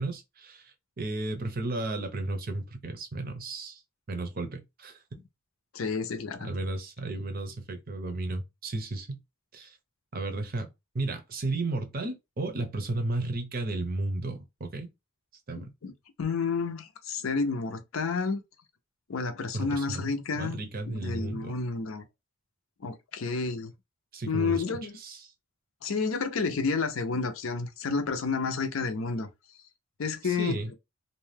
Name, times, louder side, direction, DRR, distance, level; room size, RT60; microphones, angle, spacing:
voice 1, 0.0-3.8 4.1-5.0 6.4-9.2 9.5-9.8 10.1-10.7 10.9-14.9 15.5-15.7 19.5-21.5 24.1-25.3 30.2-30.7, right 2 dB, 45° right, 0.6 m, -34 dB
voice 2, 5.7-6.5 15.5-15.9 16.2-18.4 19.1-20.6 20.9-22.0 22.8-23.7 24.3-24.9 25.8-29.3 30.0-30.7, left 4 dB, 70° left, 0.5 m, -30 dB
2.6 x 2.2 x 3.2 m
head